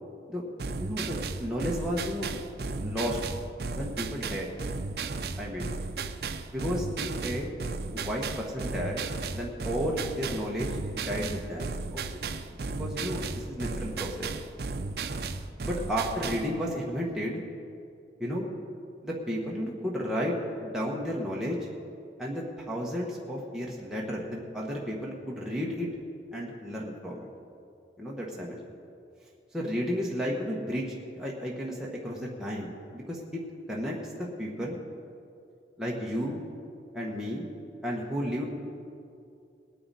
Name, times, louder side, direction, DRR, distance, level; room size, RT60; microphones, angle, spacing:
sound 1, 0.6-16.5, right 3 dB, 65° right, 0.6 m, -35 dB
voice 1, 0.8-2.3 2.8-3.2 3.7-4.5 5.4-5.7 6.5-7.5 7.9-12.0 12.4-14.3 15.6-17.4 18.2-18.5 19.0-21.7 22.2-25.9 26.3-27.3 28.0-28.7 29.5-30.9 31.1-33.4 33.7-34.8 35.8-36.4 36.9-37.5 37.8-38.5, equal, 5° right, -5 dB, 1.2 m, -33 dB
20.0 x 9.6 x 4.2 m, 2.6 s
head